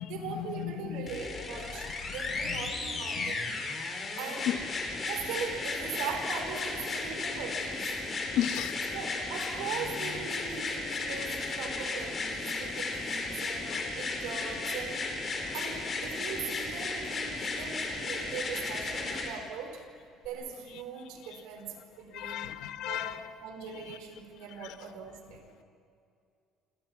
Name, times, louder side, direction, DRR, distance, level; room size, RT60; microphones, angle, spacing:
voice 1, 0.0-3.5 4.2-4.6 5.0-7.9 8.9-15.1 15.5-19.8 20.2-22.5 22.9-25.5, right 6 dB, 90° right, 4 dB, 4.9 m, -40 dB
voice 2, 0.6-1.1 3.2-3.3 4.5-4.6 8.3-8.8 13.7-13.8 22.1-23.1, left 12 dB, 60° left, 9 dB, 1.2 m, -32 dB
sound 1, 1.1-19.3 20.2-20.3, left 3 dB, 25° left, 3.8 m, -35 dB
28.0 x 27.5 x 6.0 m, 2.4 s
cardioid pair, 175°, 0 cm